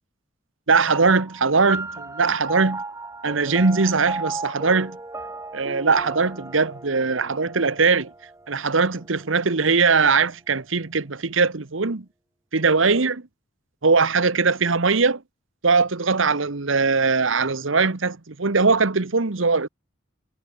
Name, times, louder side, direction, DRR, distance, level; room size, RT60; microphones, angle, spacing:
voice 1, 0.7-2.8 3.2-5.0 5.5-8.1 8.5-12.0 12.5-13.2 13.8-15.2 15.6-19.7, right 4 dB, 75° right, 1.2 m, -20 dB
sound 1, 0.9-9.7, right 3 dB, 15° right, 1.0 m, -36 dB
head